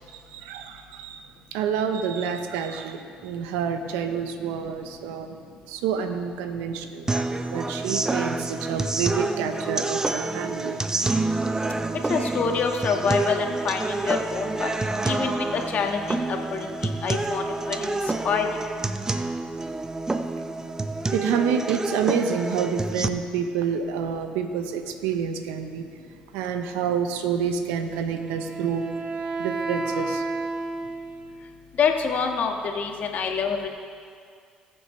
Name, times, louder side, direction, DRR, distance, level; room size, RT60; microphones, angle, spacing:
voice 1, 0.1-1.2 1.5-5.4 5.7-7.1 7.5-10.8 21.1-25.9 26.3-28.9 29.4-30.3, right 7 dB, 85° right, 7 dB, 0.8 m, -28 dB
sound 1, 7.1-23.1, right 2 dB, 20° right, 0.7 m, -28 dB
voice 2, 12.1-14.7 15.0-16.7 17.0-18.0 18.2-18.5 31.8-33.7, left 6 dB, 55° left, 3 dB, 1.5 m, -26 dB
Wind instrument woodwind instrument, 27.9-31.5, right 3 dB, 40° right, 1.2 m, -31 dB
20.0 x 7.0 x 3.2 m, 2.2 s
supercardioid pair, 70°, 3 cm